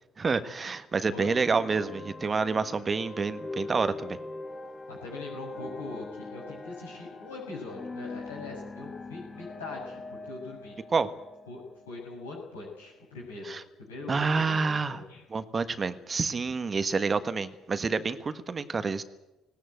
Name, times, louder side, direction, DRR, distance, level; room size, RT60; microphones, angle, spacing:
voice 1, 0.2-4.2 10.9-11.1 13.4-13.6 14.1-15.0 15.3-19.0, right 4 dB, 30° right, 12 dB, 1.5 m, -28 dB
sound 1, 1.2-12.4, left 2 dB, 25° left, 1.5 m, -42 dB
voice 2, 4.9-10.8 11.5-15.2, left 3 dB, 80° left, -1 dB, 6.4 m, -42 dB
19.0 x 18.0 x 9.3 m, 1.0 s
figure-of-eight pair, 50°, 0 cm